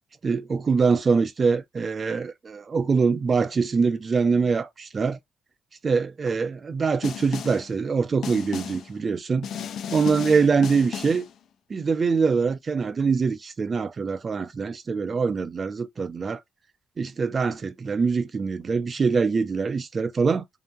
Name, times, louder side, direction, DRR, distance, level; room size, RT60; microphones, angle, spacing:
voice 1, 0.2-5.2 5.8-9.5 9.9-11.3 11.7-16.4 17.0-20.4, right 5 dB, 40° right, 0.5 m, -24 dB
Snare drum, 7.0-7.7 8.2-8.9 9.4-11.3, left 8 dB, 65° left, 0.4 m, -34 dB
2.8 x 2.2 x 2.6 m
cardioid pair, 90°, 0 cm